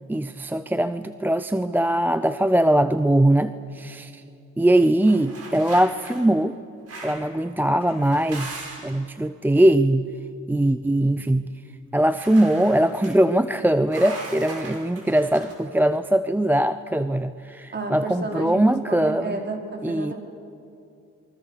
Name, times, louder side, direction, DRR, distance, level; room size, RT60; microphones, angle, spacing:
voice 1, 0.1-4.2 4.6-6.6 7.0-10.1 10.5-11.5 11.9-19.4 19.8-20.1, right 1 dB, 5° right, 12 dB, 0.6 m, -21 dB
sound 1, 5.0-6.2 6.9-7.3 7.8-9.0 12.1-13.1 13.9-15.5, right 2 dB, 50° right, 6.6 m, -39 dB
voice 2, 17.7-20.1, right 2 dB, 35° right, 2 dB, 4.7 m, -31 dB
29.0 x 23.5 x 6.7 m, 2.6 s
cardioid pair, 90°, 30 cm